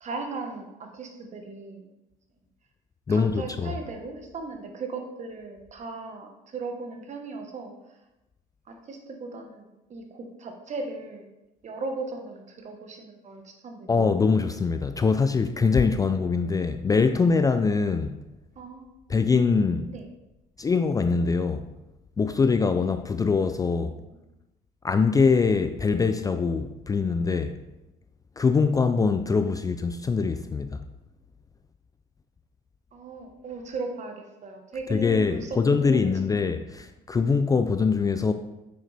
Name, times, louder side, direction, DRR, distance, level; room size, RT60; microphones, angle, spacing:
voice 1, 0.0-1.9 3.1-7.7 8.7-11.3 11.6-13.9 18.5-18.9 19.9-20.1 23.9-24.2 29.4-29.6 32.9-36.3, right 3 dB, 45° right, 1.2 m, -37 dB
voice 2, 3.1-3.7 13.9-18.2 19.1-19.9 20.6-21.7 22.2-24.0 24.8-27.6 28.4-30.8 34.9-38.3, left 4 dB, 20° left, 0.3 m, -23 dB
6.6 x 6.4 x 3.4 m
cardioid pair, 110°, 17 cm